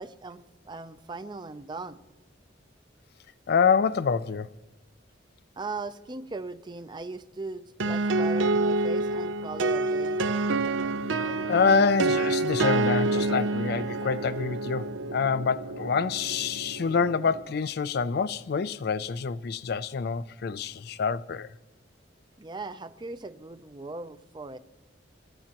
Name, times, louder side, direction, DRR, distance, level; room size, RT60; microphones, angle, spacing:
voice 1, 0.0-2.0 5.6-10.2 22.4-24.6, right 3 dB, 25° right, 0.5 m, -39 dB
voice 2, 3.5-4.5 11.2-21.5, left 5 dB, 55° left, 0.4 m, -26 dB
sound 1, 7.8-17.4, right 2 dB, 85° right, 0.6 m, -28 dB
28.0 x 12.5 x 2.9 m
head